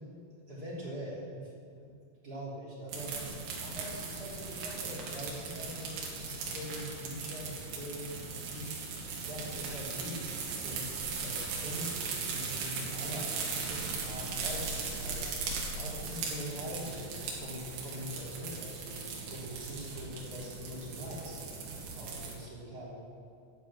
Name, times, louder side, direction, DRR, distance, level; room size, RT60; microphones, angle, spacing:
voice 1, 0.3-1.9 2.2-3.2 3.6-10.9 11.2-15.3 15.7-21.5 22.0-23.0, equal, 20° right, -6 dB, 3.2 m, -43 dB
sound 1, 2.9-22.3, right 4 dB, 85° right, 5.3 m, -38 dB
13.5 x 12.5 x 7.6 m, 2.4 s
omnidirectional pair, 6.0 m